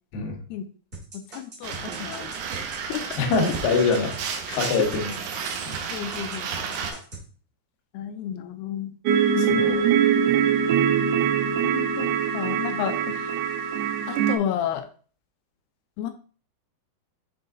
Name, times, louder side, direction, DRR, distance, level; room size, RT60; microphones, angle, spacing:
sound 1, 0.9-5.8 6.1-7.2, right 2 dB, 20° right, 1.5 m, -40 dB
voice 1, 1.1-2.3 2.9-3.0 4.5-4.6 5.9-6.5 7.9-8.9 9.4-10.0 11.6-13.3 14.1-14.9 16.0-16.1, left 10 dB, 90° left, 7 dB, 2.6 m, -31 dB
sound 2, 1.6-6.9, right 6 dB, 70° right, 2.3 m, -32 dB
voice 2, 3.2-4.2 4.6-5.2 9.4-9.8, left 4 dB, 70° left, 2 dB, 2.7 m, -24 dB
sound 3, 9.1-14.4, right 8 dB, 90° right, 2.9 m, -22 dB
7.6 x 4.1 x 3.7 m, 0.41 s
omnidirectional pair, 4.7 m